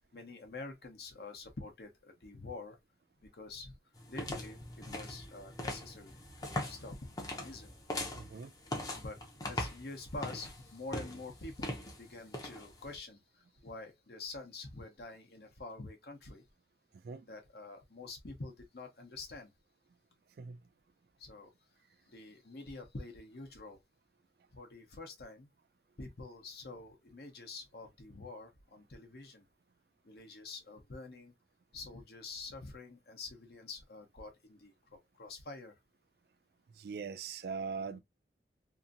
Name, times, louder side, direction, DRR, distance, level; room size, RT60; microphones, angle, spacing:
voice 1, 0.1-2.8 3.3-3.8 4.1-4.6 4.9-6.1 6.4-7.7 9.0-13.2 13.6-16.4 17.3-19.5 21.2-21.5 22.1-23.8 24.5-25.5 26.0-29.4 30.0-31.3 31.7-35.7 37.9-38.0, left 3 dB, 60° left, 0.9 m, -47 dB
sound 1, 4.0-13.0, left 1 dB, 20° left, 0.6 m, -41 dB
voice 2, 8.1-8.5 17.0-17.3 20.4-20.6 36.7-38.0, right 5 dB, 60° right, 0.3 m, -41 dB
2.8 x 2.6 x 2.4 m
head